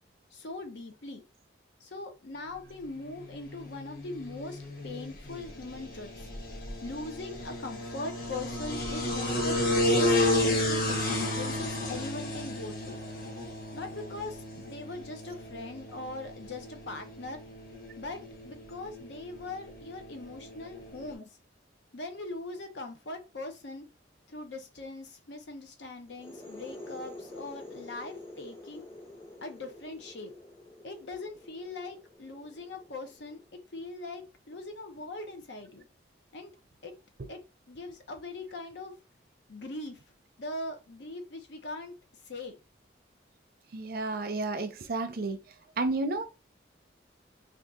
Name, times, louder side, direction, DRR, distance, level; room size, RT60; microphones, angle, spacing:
voice 1, 0.3-1.2 1.8-6.3 6.8-13.0 13.7-17.4 18.0-21.4 21.9-23.9 24.3-28.9 29.4-30.3 30.8-33.4 33.7-35.9 36.3-36.5 36.8-36.9 37.3-37.4 37.7-38.9 39.5-40.0 40.4-42.0 42.2-42.6, left 2 dB, 70° left, 0.7 m, -41 dB
sound 1, 3.1-21.1, left 1 dB, 50° left, 1.0 m, -33 dB
sound 2, 26.1-33.6, left 1 dB, 10° left, 0.8 m, -48 dB
voice 2, 43.7-45.4 45.8-46.3, right 3 dB, 50° right, 0.5 m, -31 dB
2.7 x 2.5 x 3.6 m
head